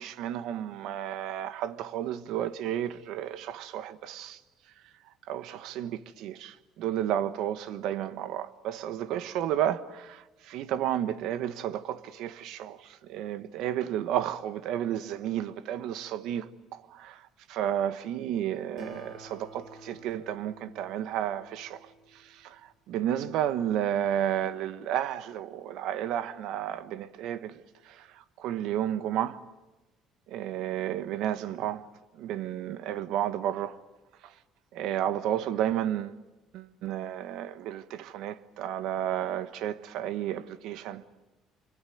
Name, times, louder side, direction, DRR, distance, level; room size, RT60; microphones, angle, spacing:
voice 1, 0.0-4.4 5.3-17.2 17.5-21.9 22.3-22.6 22.9-28.1 28.4-29.4 30.3-31.8 32.2-33.8 34.7-36.2 36.5-41.0, right 11 dB, 70° right, 1.2 m, -32 dB
Acoustic guitar, 18.8-22.5, right 1 dB, 40° right, 5.9 m, -50 dB
25.5 x 24.5 x 9.4 m
cardioid pair, 165°, 0 cm